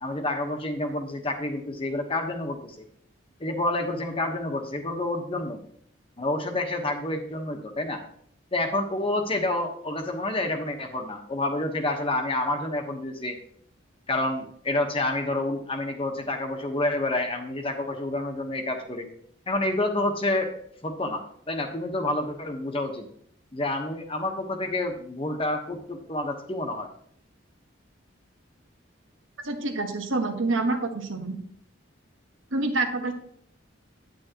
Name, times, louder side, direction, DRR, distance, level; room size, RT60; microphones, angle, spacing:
voice 1, 0.0-2.8 3.4-5.6 6.2-8.0 8.5-13.3 14.1-19.1 19.5-20.5 20.8-23.1 23.5-26.9, left 2 dB, 30° left, 4 dB, 1.1 m, -28 dB
voice 2, 29.4-31.4 32.5-33.1, right 2 dB, 85° right, 5 dB, 1.3 m, -27 dB
9.7 x 9.1 x 2.9 m, 0.66 s
head